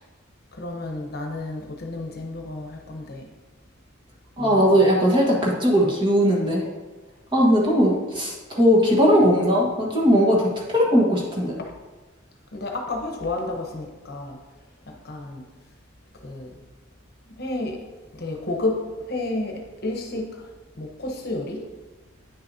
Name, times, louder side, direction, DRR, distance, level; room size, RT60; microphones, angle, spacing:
voice 1, 0.5-3.3 4.4-4.7 11.6-11.7 12.5-14.4 14.9-15.4 16.2-16.6 17.4-17.8 18.1-20.5 20.7-21.6, left 2 dB, 50° left, 2 dB, 1.0 m, -31 dB
voice 2, 4.4-6.7 7.3-11.6, equal, 25° right, -2 dB, 1.4 m, -19 dB
9.5 x 6.4 x 2.7 m, 1.2 s
head